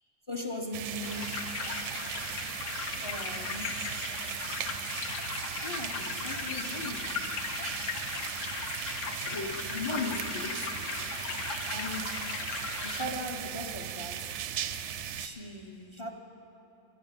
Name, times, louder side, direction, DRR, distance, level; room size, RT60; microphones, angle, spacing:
voice 1, 0.3-1.4 3.0-3.8 5.6-7.4 9.1-10.7 11.7-12.3 12.8-14.3 15.2-16.1, left 2 dB, 35° left, 4 dB, 0.5 m, -38 dB
sound 1, 0.7-15.3, right 9 dB, 65° right, 0.7 m, -38 dB
sound 2, 1.0-13.1, left 6 dB, 65° left, 1.0 m, -37 dB
12.5 x 8.1 x 8.7 m, 3.0 s
omnidirectional pair, 1.5 m